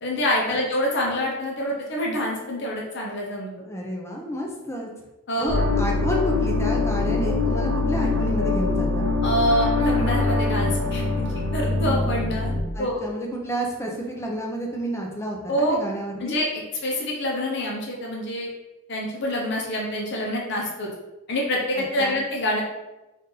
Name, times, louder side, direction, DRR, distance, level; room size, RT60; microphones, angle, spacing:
voice 1, 0.0-3.5 5.3-5.6 9.2-12.5 12.8-13.0 15.5-15.8 16.2-18.5 18.9-20.9 21.3-22.6, equal, 55° left, -2 dB, 0.8 m, -26 dB
voice 2, 3.6-4.9 5.4-9.1 12.7-16.4 21.8-22.2, equal, 15° left, 0 dB, 0.6 m, -30 dB
sound 1, 5.5-12.6, left 3 dB, 70° right, 0.8 m, -23 dB
3.9 x 2.6 x 3.9 m, 1.0 s
head